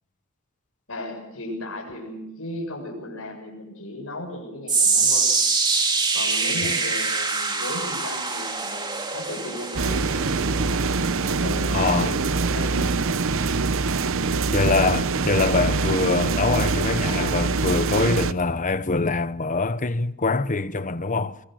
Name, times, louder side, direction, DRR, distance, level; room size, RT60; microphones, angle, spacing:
voice 1, 0.9-5.3 6.1-10.1 11.2-13.1 14.5-14.6, left 1 dB, 65° left, 7.5 m, -35 dB
sound 1, 4.7-17.0 17.3-17.7 18.3-18.4, right 4 dB, 20° right, 3.0 m, -26 dB
sound 2, 9.7-18.3, right 4 dB, 65° right, 0.8 m, -24 dB
voice 2, 11.7-12.2 14.5-21.4, left 3 dB, 35° left, 1.0 m, -24 dB
26.5 x 21.5 x 6.4 m
head